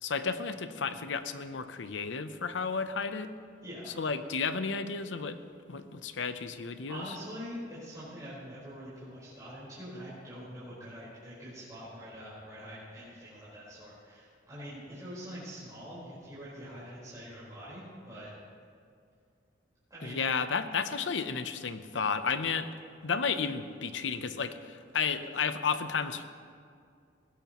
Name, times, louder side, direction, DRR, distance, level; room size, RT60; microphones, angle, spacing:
voice 1, 0.0-3.3 4.0-5.4 5.7-7.1 20.0-22.7 23.0-26.2, left 5 dB, 75° left, 10 dB, 0.7 m, -32 dB
voice 2, 3.6-3.9 6.9-18.3 19.9-20.2, equal, 20° right, -11 dB, 4.4 m, -44 dB
19.5 x 16.0 x 3.0 m, 2.3 s
head